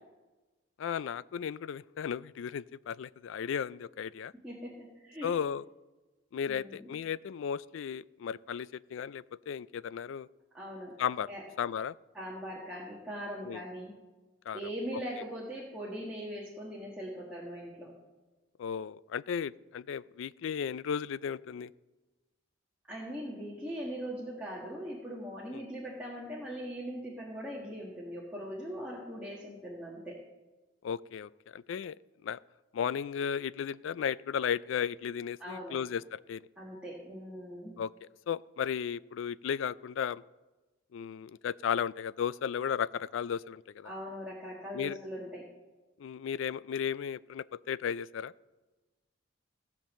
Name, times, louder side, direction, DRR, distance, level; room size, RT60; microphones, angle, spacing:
voice 1, 0.8-4.3 5.2-5.6 6.3-10.3 11.0-11.3 11.6-11.9 13.4-13.6 14.5-14.6 18.6-21.7 25.5-25.7 30.8-32.0 32.2-32.4 32.7-36.4 37.8-40.2 40.9-43.9 44.7-45.0 46.0-48.3, left 7 dB, 75° left, 19 dB, 0.3 m, -35 dB
voice 2, 4.4-5.3 6.5-6.9 10.5-11.0 11.3-11.4 12.1-13.9 14.5-17.9 22.9-30.2 35.4-35.8 36.6-37.8 43.8-45.4, equal, 5° right, -6 dB, 1.6 m, -40 dB
15.5 x 5.3 x 7.5 m, 1.2 s
head